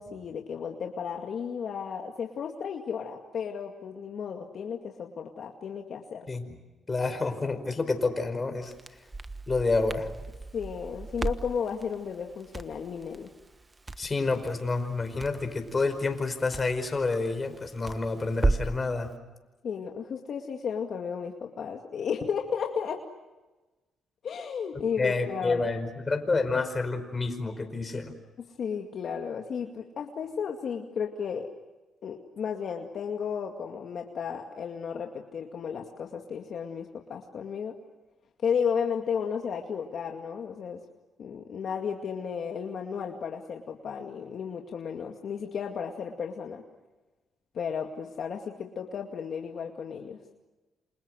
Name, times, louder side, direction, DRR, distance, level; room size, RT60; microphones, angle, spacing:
voice 1, 0.0-6.3 10.5-13.3 19.6-23.0 24.2-25.7 28.4-31.5 32.0-37.8 38.4-40.8 41.2-46.6 47.5-50.2, left 7 dB, 60° left, 2 dB, 2.2 m, -34 dB
voice 2, 6.9-8.7 9.5-10.1 14.0-19.1 24.8-28.1, left 3 dB, 30° left, 7 dB, 5.1 m, -29 dB
Crackle, 8.6-18.8, right 2 dB, 20° right, 1.3 m, -36 dB
28.5 x 27.0 x 6.4 m, 1.1 s
cardioid pair, 90°, 0 cm